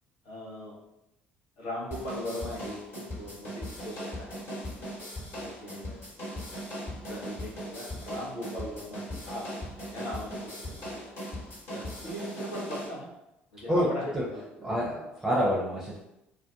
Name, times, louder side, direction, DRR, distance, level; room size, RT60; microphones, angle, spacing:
voice 1, 0.2-0.7 1.6-2.8 3.1-4.9 5.4-6.0 7.1-9.5 9.9-11.1 11.7-13.1 13.5-14.4, left 1 dB, 65° left, -4 dB, 0.8 m, -39 dB
sound 1, 1.9-12.9, equal, 40° left, 1.1 m, -39 dB
voice 2, 14.6-16.0, equal, 10° right, -5 dB, 0.6 m, -27 dB
2.4 x 2.2 x 2.7 m, 0.88 s
figure-of-eight pair, 55°, 6 cm